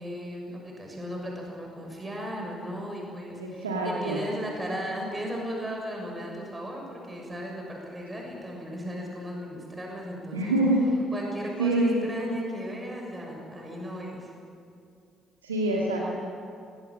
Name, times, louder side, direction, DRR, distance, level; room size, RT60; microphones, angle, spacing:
voice 1, 0.0-10.6 11.1-14.3, equal, 25° right, 0 dB, 6.7 m, -36 dB
voice 2, 3.4-4.2 10.3-10.9 11.6-12.1 15.4-16.0, right 1 dB, 90° right, -3 dB, 2.1 m, -25 dB
23.0 x 17.5 x 8.9 m, 2.4 s
hypercardioid pair, 45°, 0 cm